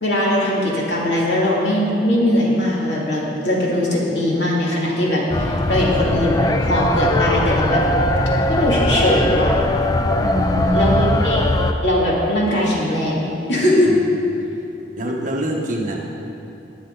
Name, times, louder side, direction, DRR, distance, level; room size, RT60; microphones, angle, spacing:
voice 1, 0.0-7.8 8.5-9.5 10.7-11.5 11.8-13.9, left 1 dB, 65° left, -5 dB, 2.8 m, -20 dB
sound 1, 5.3-11.7, left 1 dB, 20° left, 0.5 m, -20 dB
voice 2, 10.2-11.0 13.8-14.2 15.0-16.0, right 1 dB, 45° right, -1 dB, 1.5 m, -24 dB
21.5 x 7.2 x 4.0 m, 2.8 s
head